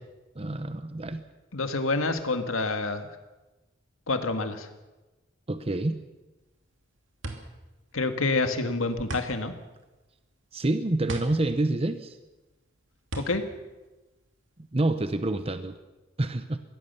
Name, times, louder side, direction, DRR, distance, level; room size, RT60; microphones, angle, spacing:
voice 1, 0.3-1.2 5.5-6.0 10.5-12.2 14.7-15.8 16.2-16.6, right 2 dB, 30° right, 10 dB, 0.9 m, -27 dB
voice 2, 1.5-3.1 4.1-4.7 7.9-9.5 13.2-13.4, left 3 dB, 85° left, 8 dB, 1.9 m, -27 dB
sound 1, 6.4-14.8, right 2 dB, 65° right, 2.6 m, -41 dB
22.5 x 16.5 x 6.9 m, 1.1 s
head